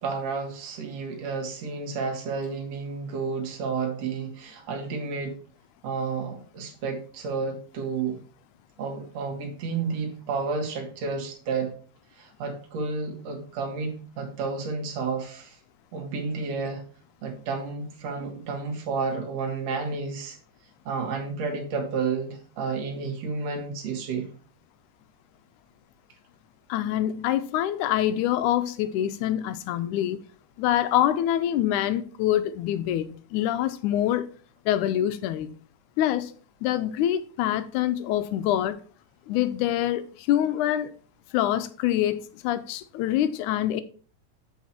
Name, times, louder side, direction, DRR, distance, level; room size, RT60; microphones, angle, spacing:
voice 1, 0.0-5.4 5.8-8.2 8.8-11.7 12.2-15.6 15.9-16.8 17.2-20.4 20.9-24.3, right 4 dB, 60° right, 2.6 m, -31 dB
voice 2, 26.7-30.2 30.6-34.3 34.7-35.5 36.0-36.3 36.6-38.8 39.3-40.9 41.3-43.8, left 12 dB, 85° left, 2.1 m, -25 dB
7.4 x 6.0 x 4.2 m
omnidirectional pair, 3.5 m